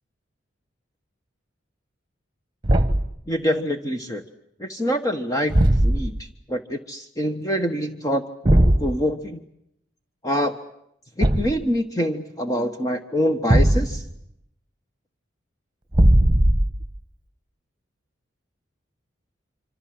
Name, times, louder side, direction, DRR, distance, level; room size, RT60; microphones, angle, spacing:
Thump thud, 2.6-3.2 5.5-6.2 8.5-8.9 11.2-11.7 13.5-14.1 15.9-16.9, right 1 dB, 25° right, 1.5 m, -18 dB
voice 1, 3.3-4.2 4.6-8.2 8.8-9.4 10.2-10.5 11.2-14.0, equal, 20° left, 5 dB, 1.3 m, -25 dB
26.5 x 26.0 x 7.7 m, 0.77 s
head